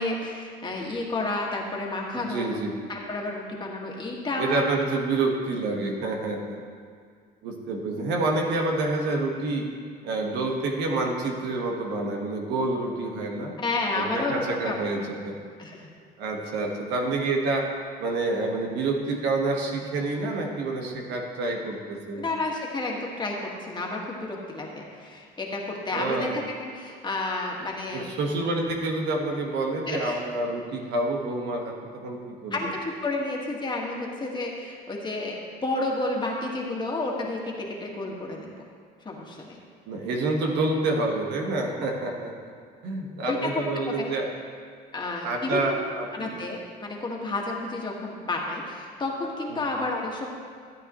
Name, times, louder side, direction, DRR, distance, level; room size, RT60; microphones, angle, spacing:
voice 1, 0.0-2.5 2.9-4.7 13.6-14.8 15.6-15.9 22.1-28.1 29.9-30.2 32.5-38.5 39.0-39.6 43.3-44.1 44.9-45.7 46.1-50.3, left 2 dB, 25° left, -1 dB, 1.7 m, -31 dB
voice 2, 2.1-2.8 4.4-6.6 7.4-9.7 10.0-13.5 13.9-15.4 16.2-17.7 18.0-22.2 25.9-26.3 27.9-32.7 39.9-42.3 42.8-44.3 45.2-46.4 49.5-49.6, right 2 dB, 85° right, 1 dB, 1.4 m, -28 dB
14.0 x 8.8 x 3.1 m, 2.1 s
cardioid pair, 110°, 17 cm